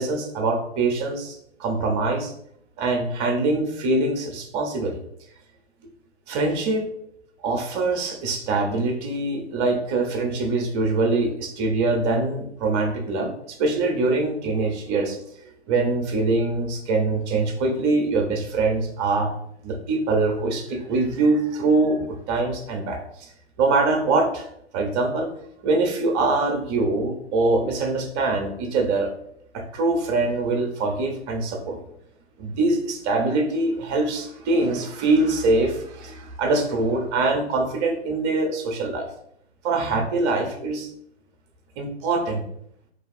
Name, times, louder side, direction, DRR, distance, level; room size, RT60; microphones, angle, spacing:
voice 1, 0.0-2.3 2.8-5.0 6.3-6.9 7.4-15.2 15.7-19.3 19.6-23.3 23.6-25.3 25.6-29.1 29.5-31.8 32.4-39.1 39.6-40.9 41.8-42.4, right 3 dB, 25° right, 3 dB, 0.6 m, -23 dB
2.6 x 2.3 x 4.0 m, 0.71 s
figure-of-eight pair, 115°, 33 cm